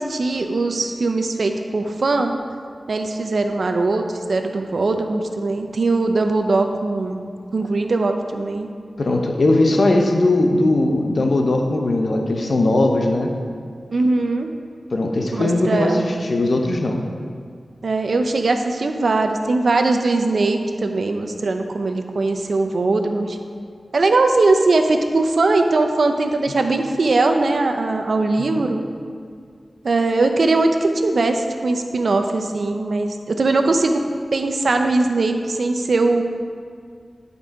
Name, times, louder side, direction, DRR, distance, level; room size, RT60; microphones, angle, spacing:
voice 1, 0.0-2.4 2.9-7.2 7.5-8.7 13.9-14.5 15.3-16.1 17.8-23.4 23.9-28.8 29.8-34.0 34.3-36.2, right 3 dB, 65° right, 5 dB, 0.7 m, -20 dB
voice 2, 9.0-13.3 14.9-17.1 28.6-28.7, left 2 dB, 60° left, 3 dB, 0.8 m, -19 dB
10.5 x 5.5 x 4.7 m, 2.1 s
wide cardioid pair, 85°, 0 cm